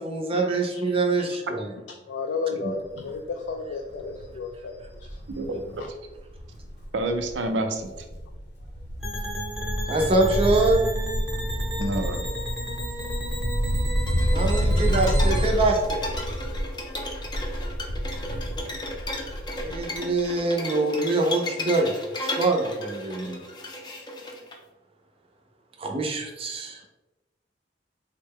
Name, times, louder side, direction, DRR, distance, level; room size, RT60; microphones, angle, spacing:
voice 1, 0.0-1.7 9.9-10.8 14.3-16.2 19.6-21.9 22.2-23.4 25.8-26.8, right 2 dB, 30° right, 2 dB, 0.5 m, -24 dB
voice 2, 2.1-4.7, left 4 dB, 80° left, 3 dB, 0.3 m, -32 dB
Wind, 2.9-3.2 3.6-3.7 3.9-7.5 7.8-20.0 20.2-20.3, equal, 65° left, 0.7 m, -29 dB
voice 3, 5.4-5.8 6.9-8.1 11.8-12.2, right 1 dB, 85° right, 5 dB, 0.5 m, -28 dB
sound 1, 9.0-15.5, right 1 dB, 5° right, 0.8 m, -32 dB
sound 2, 14.1-24.5, left 1 dB, 25° left, 0.5 m, -34 dB
3.6 x 2.1 x 3.5 m, 1.1 s
head